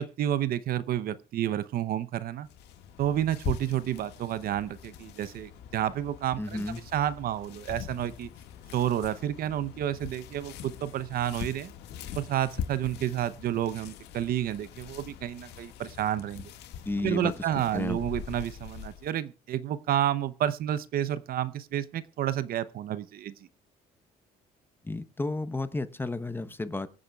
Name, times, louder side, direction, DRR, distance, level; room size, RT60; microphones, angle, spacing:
voice 1, 0.0-2.5 3.0-6.6 6.9-8.3 8.7-11.7 12.1-16.5 17.0-23.3, right 11 dB, 60° right, 15 dB, 0.8 m, -30 dB
sound 1, 2.4-19.1, left 8 dB, 85° left, 1.8 m, -42 dB
voice 2, 6.4-6.8 16.9-17.3 17.7-18.0 24.8-26.9, left 2 dB, 15° left, 12 dB, 0.9 m, -32 dB
24.0 x 8.5 x 2.4 m, 0.34 s
cardioid pair, 110°, 17 cm